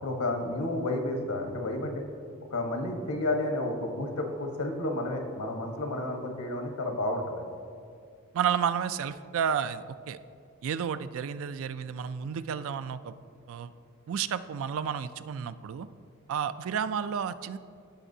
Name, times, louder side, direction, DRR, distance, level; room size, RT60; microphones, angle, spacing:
voice 1, 0.0-2.0 2.5-7.5, left 2 dB, 90° left, 4 dB, 1.2 m, -31 dB
voice 2, 8.3-10.2 10.6-13.1 13.5-13.7 14.1-15.9 16.3-17.6, right 7 dB, 65° right, 13 dB, 0.3 m, -31 dB
16.0 x 5.8 x 2.7 m, 2.3 s
head